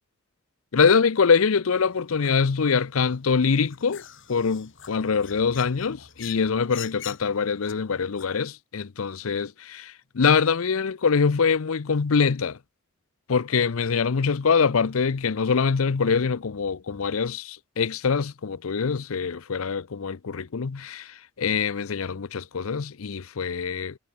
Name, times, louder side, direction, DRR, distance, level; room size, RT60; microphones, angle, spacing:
voice 1, 0.7-4.0 4.3-12.6 13.3-24.0, left 5 dB, 80° left, 0.6 m, -24 dB
sound 1, 1.7-8.4, left 9 dB, 65° left, 5.2 m, -46 dB
head